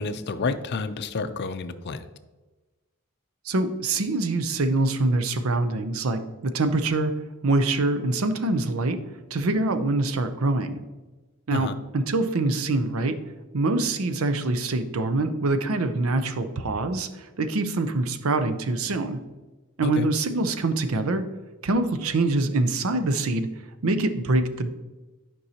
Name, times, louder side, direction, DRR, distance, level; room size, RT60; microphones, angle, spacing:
voice 1, 0.0-2.0 11.5-11.8 19.8-20.1, left 3 dB, 50° left, 11 dB, 0.5 m, -29 dB
voice 2, 3.5-7.1 7.4-9.0 9.3-10.8 11.5-13.2 13.5-19.2 19.8-21.2 21.6-23.5 23.8-24.7, right 2 dB, 70° right, 9 dB, 0.6 m, -24 dB
9.5 x 5.4 x 2.8 m, 1.2 s
head